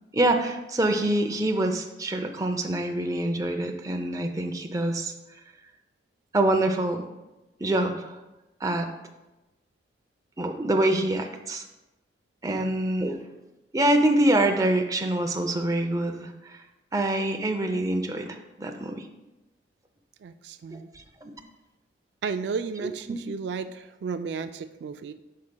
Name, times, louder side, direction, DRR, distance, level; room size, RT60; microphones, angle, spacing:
voice 1, 0.1-5.1 6.3-7.0 7.6-8.2 8.6-8.9 10.4-11.6 12.4-13.2 13.7-16.6 16.9-19.1 21.2-21.3 23.1-23.2, right 1 dB, 20° right, 4 dB, 0.5 m, -25 dB
voice 2, 20.2-20.9 22.2-25.1, right 5 dB, 75° right, 10 dB, 0.3 m, -33 dB
12.0 x 4.7 x 2.2 m, 1.0 s
head